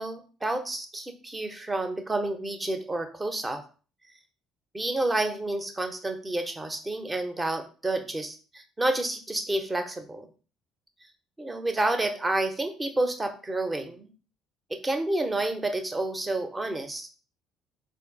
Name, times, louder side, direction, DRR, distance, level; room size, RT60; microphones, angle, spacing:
voice 1, 0.0-3.6 4.7-10.3 11.4-14.1 14.7-17.1, right 2 dB, 20° right, 6 dB, 0.9 m, -29 dB
4.2 x 2.6 x 3.9 m, 0.37 s
hypercardioid pair, 55°, 0 cm